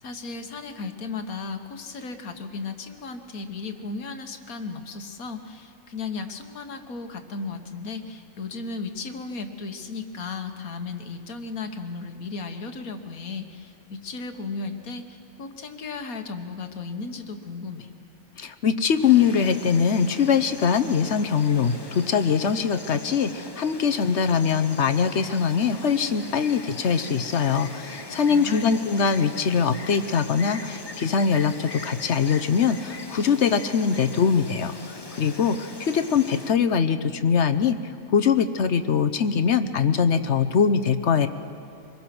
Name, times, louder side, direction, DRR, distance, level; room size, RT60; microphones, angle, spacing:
voice 1, 0.0-17.9 28.3-28.7, left 4 dB, 70° left, 7 dB, 1.8 m, -35 dB
voice 2, 18.4-37.8 38.1-41.3, left 6 dB, 55° left, 10 dB, 1.1 m, -22 dB
Insect, 19.0-36.5, left 3 dB, 20° left, 0.9 m, -40 dB
25.0 x 21.5 x 6.1 m, 2.7 s
omnidirectional pair, 1.5 m